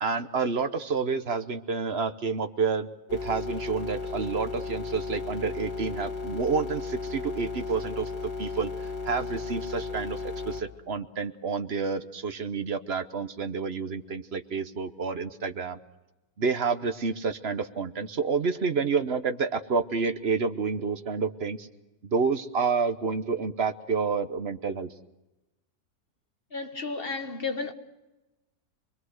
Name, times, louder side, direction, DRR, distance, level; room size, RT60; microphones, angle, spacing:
voice 1, 0.0-15.8 16.4-21.7 22.0-24.9, right 5 dB, 45° right, 1.1 m, -29 dB
sound 1, 3.1-10.6, left 4 dB, 85° left, 3.2 m, -35 dB
voice 2, 26.5-27.7, left 4 dB, 40° left, 1.5 m, -32 dB
27.0 x 22.0 x 6.5 m
omnidirectional pair, 1.7 m